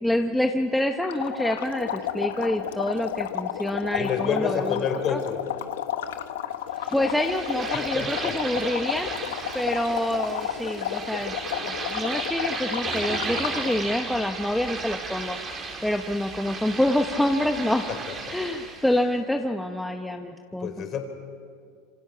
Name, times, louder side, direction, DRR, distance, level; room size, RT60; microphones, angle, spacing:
voice 1, 0.0-4.8 5.1-5.2 6.9-11.3 11.9-15.4 15.8-17.9 18.3-20.7, left 1 dB, 5° left, 4 dB, 1.0 m, -27 dB
sound 1, 1.0-13.8, left 11 dB, 90° left, 1.2 m, -32 dB
voice 2, 3.9-5.4 7.7-8.4 17.9-18.0 18.3-18.4 20.6-21.1, left 7 dB, 40° left, 6 dB, 4.1 m, -29 dB
sound 2, 6.8-19.0, right 4 dB, 30° right, 4.0 m, -34 dB
27.0 x 25.5 x 5.8 m, 2.2 s
supercardioid pair, 120°, 0 cm